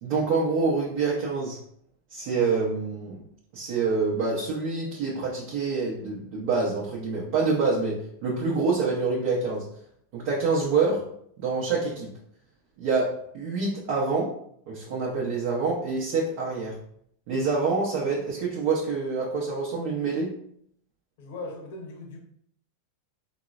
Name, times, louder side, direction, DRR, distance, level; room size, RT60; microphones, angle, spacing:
voice 1, 0.0-1.6 2.1-3.2 3.5-9.6 10.1-11.1 11.4-12.1 12.8-14.3 14.7-16.8 17.3-20.3, right 4 dB, 60° right, -4 dB, 0.7 m, -26 dB
voice 2, 21.2-22.2, left 2 dB, 65° left, 1 dB, 0.7 m, -38 dB
3.7 x 2.0 x 2.4 m, 0.68 s
hypercardioid pair, 105°, 0 cm